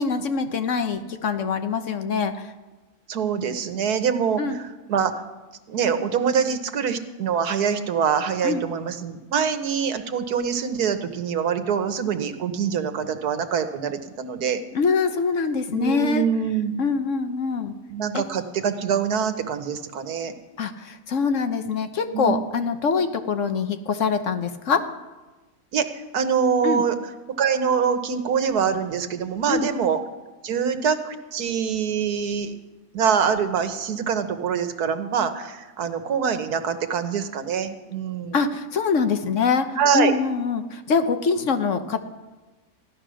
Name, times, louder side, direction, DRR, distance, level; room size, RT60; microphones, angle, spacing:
voice 1, 0.0-2.3 4.4-4.6 8.4-8.6 14.7-16.3 16.8-17.7 18.1-18.2 20.6-24.9 26.6-26.8 29.5-29.7 38.3-42.0, left 5 dB, 60° left, 8 dB, 1.2 m, -24 dB
voice 2, 3.1-5.1 5.7-14.6 15.7-16.7 17.9-20.3 22.1-22.3 25.7-27.0 27.4-30.0 30.4-32.5 32.9-38.4 39.8-40.1, right 7 dB, 90° right, 9 dB, 1.6 m, -24 dB
15.0 x 11.5 x 6.3 m, 1.2 s
omnidirectional pair, 1.6 m